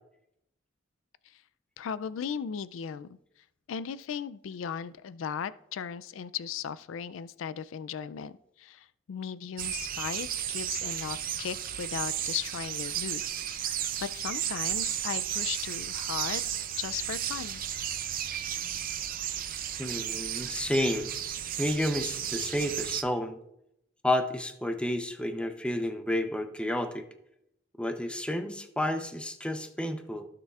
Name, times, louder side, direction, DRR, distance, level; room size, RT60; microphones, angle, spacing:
voice 1, 1.8-3.2 3.7-13.2 13.5-13.6 14.0-16.4 16.8-17.6, left 7 dB, 75° left, 15 dB, 0.4 m, -37 dB
sound 1, 9.6-23.0, right 10 dB, 45° right, 0.5 m, -34 dB
voice 2, 19.8-21.1 21.6-23.4 24.0-27.0 27.8-30.3, left 1 dB, 5° left, 7 dB, 0.6 m, -30 dB
15.5 x 6.7 x 2.4 m, 0.79 s
head